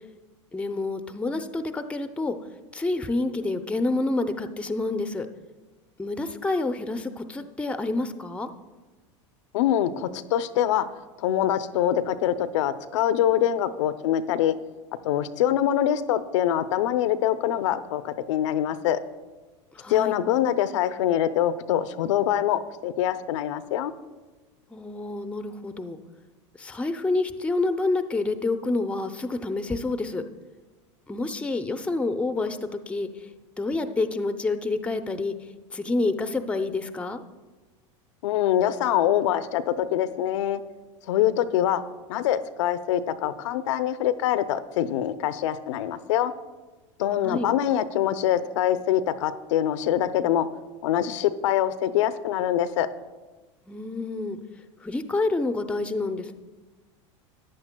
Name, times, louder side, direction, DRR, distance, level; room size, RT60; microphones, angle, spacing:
voice 1, 0.5-2.4 2.7-5.3 6.0-8.5 19.8-20.1 24.7-26.0 26.6-30.2 31.1-33.1 33.6-35.3 35.7-37.2 47.2-47.5 53.7-54.4 54.8-56.3, left 2 dB, 10° left, 8 dB, 0.5 m, -28 dB
voice 2, 9.5-10.9 11.2-14.5 15.0-19.0 19.9-23.9 38.2-40.6 41.1-41.8 42.1-46.3 47.0-50.5 50.8-52.9, left 11 dB, 75° left, 12 dB, 0.5 m, -24 dB
14.0 x 9.7 x 2.2 m, 1.2 s
hypercardioid pair, 110°, 16 cm